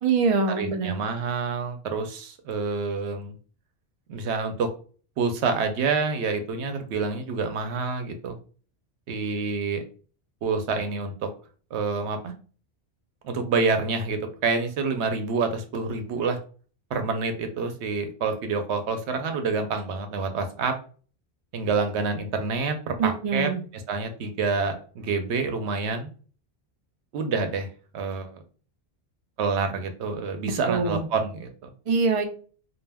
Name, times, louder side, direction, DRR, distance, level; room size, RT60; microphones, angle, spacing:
voice 1, 0.0-1.0 23.0-23.6 30.4-31.1 31.9-32.3, right 4 dB, 50° right, 5 dB, 0.4 m, -24 dB
voice 2, 0.6-3.4 4.1-4.7 5.2-8.4 9.1-9.8 10.4-11.3 11.7-12.3 13.2-16.4 16.9-20.8 21.5-23.5 23.9-26.1 27.1-27.7 27.9-28.4 29.4-31.5, right 4 dB, 85° right, 6 dB, 0.9 m, -27 dB
2.2 x 2.2 x 3.3 m, 0.40 s
omnidirectional pair, 1.1 m